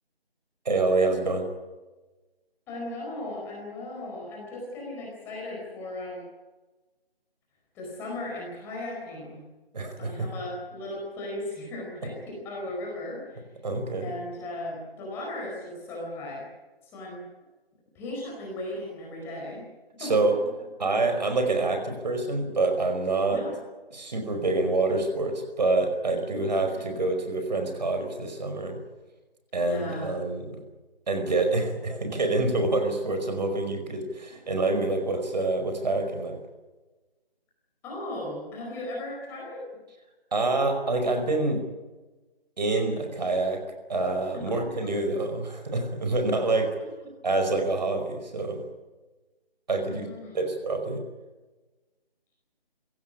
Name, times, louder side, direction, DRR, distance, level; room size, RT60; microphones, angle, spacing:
voice 1, 0.7-1.4 9.7-10.1 13.6-14.1 20.0-20.3 20.8-23.4 23.9-28.8 29.5-30.6 31.1-36.4 40.3-41.6 42.6-43.6 43.9-46.7 47.2-48.6 49.7-50.1 50.3-51.0, right 2 dB, 45° right, 6 dB, 5.2 m, -26 dB
voice 2, 2.7-6.2 7.7-9.4 10.0-13.4 14.0-16.5 16.8-17.2 17.9-19.6 19.9-20.3 23.3-23.5 26.6-27.0 29.6-30.2 34.3-34.4 37.8-39.6 44.3-44.6 44.8-44.9 46.5-46.6 49.8-50.5, left 1 dB, 10° left, -3 dB, 4.5 m, -37 dB
23.5 x 17.5 x 9.9 m, 1.2 s
figure-of-eight pair, 160°, 30 cm